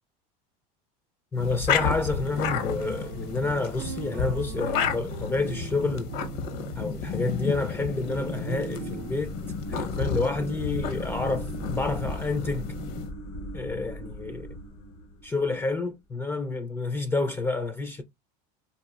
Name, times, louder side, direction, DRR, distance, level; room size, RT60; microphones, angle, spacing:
sound 1, 1.3-13.1, left 6 dB, 55° left, 0.7 m, -32 dB
voice 1, 1.3-6.1 6.8-9.3 9.7-12.7 13.5-14.5 15.2-18.0, left 3 dB, 10° left, 0.3 m, -29 dB
sound 2, 1.6-9.1, right 9 dB, 65° right, 0.5 m, -40 dB
sound 3, 6.6-15.8, equal, 85° left, 1.0 m, -39 dB
3.9 x 2.3 x 2.3 m
cardioid pair, 140°, 19 cm